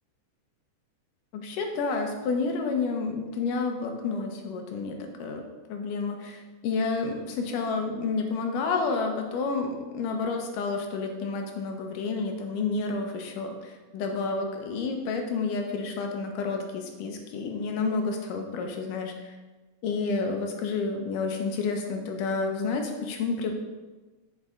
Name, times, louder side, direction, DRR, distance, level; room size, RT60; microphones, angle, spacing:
voice 1, 1.3-5.4 5.7-19.3 19.8-23.5, left 4 dB, 80° left, 3 dB, 2.5 m, -30 dB
8.0 x 7.5 x 3.8 m, 1.2 s
omnidirectional pair, 3.8 m